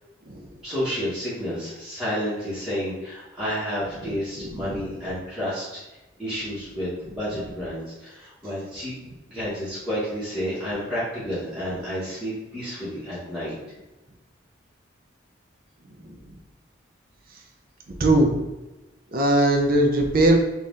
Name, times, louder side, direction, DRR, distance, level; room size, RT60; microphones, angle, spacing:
voice 1, 0.6-5.8 6.2-8.9 9.3-13.5, equal, 5° right, -12 dB, 1.2 m, -30 dB
voice 2, 4.4-4.9 18.0-18.3 19.1-20.4, right 1 dB, 45° right, 2 dB, 0.5 m, -20 dB
4.1 x 2.4 x 3.7 m, 1.1 s
head